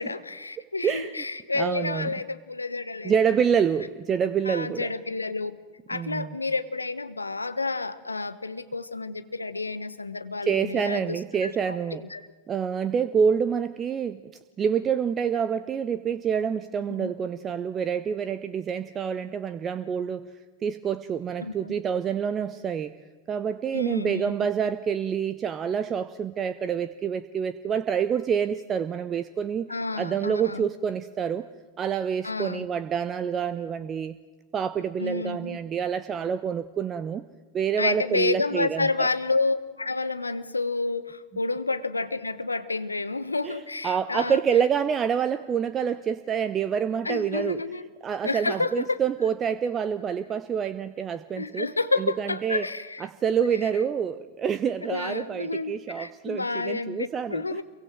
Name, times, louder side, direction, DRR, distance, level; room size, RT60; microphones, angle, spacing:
voice 1, 0.0-3.1 4.4-5.6 5.9-12.3 17.0-17.1 21.4-21.8 23.7-24.3 29.7-30.7 32.2-32.6 35.0-35.6 37.8-44.4 47.0-47.9 48.2-49.0 51.4-53.0 53.4-53.7 54.9-57.6, left 3 dB, 80° left, 12 dB, 1.4 m, -30 dB
voice 2, 0.8-1.1 1.6-2.1 3.0-4.9 5.9-6.4 10.4-12.0 12.5-14.2 14.6-20.3 20.6-22.9 23.3-29.7 30.0-31.4 31.8-34.2 34.5-37.2 37.5-39.1 43.4-47.6 48.0-51.7 52.0-52.6 53.0-57.6, right 7 dB, 25° right, 13 dB, 0.9 m, -27 dB
27.5 x 23.5 x 7.7 m, 1.3 s
figure-of-eight pair, 90°, 0 cm